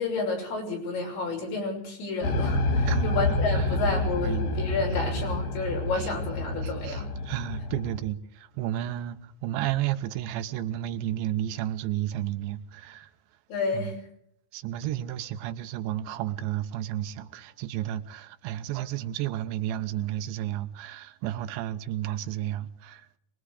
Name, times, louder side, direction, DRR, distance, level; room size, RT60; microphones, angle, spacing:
voice 1, 0.0-7.1 13.5-14.0, left 3 dB, 90° left, 8.8 m, -30 dB
sound 1, 2.2-8.0, left 1 dB, 65° left, 2.9 m, -28 dB
voice 2, 2.9-3.7 4.2-4.5 4.9-5.0 5.9-6.1 6.6-13.1 13.7-13.9 14.5-23.0, right 12 dB, 90° right, 3.3 m, -32 dB
24.5 x 21.5 x 4.9 m
omnidirectional pair, 5.0 m